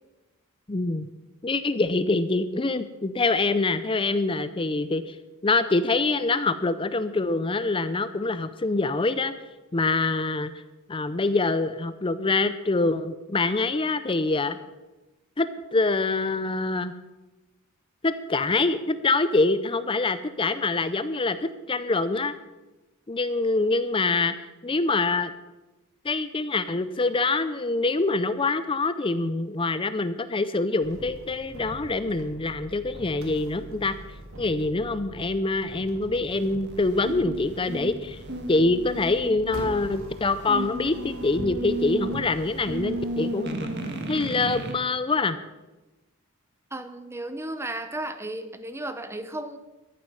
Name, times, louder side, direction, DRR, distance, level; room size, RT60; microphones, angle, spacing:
voice 1, 0.7-1.1 1.4-5.1 5.4-9.3 9.7-10.5 10.9-14.6 15.4-16.9 18.0-22.4 23.1-24.3 24.6-25.3 26.0-34.0 34.4-38.2 38.5-43.6 44.1-45.4, left 3 dB, 25° left, 13 dB, 0.5 m, -25 dB
sound 1, 30.8-43.1, right 1 dB, 70° right, 2.3 m, -43 dB
sound 2, 36.3-44.7, right 1 dB, 50° right, 1.6 m, -34 dB
voice 2, 46.7-49.6, right 1 dB, 10° right, 10 dB, 0.8 m, -34 dB
13.5 x 11.0 x 5.5 m, 1.1 s
head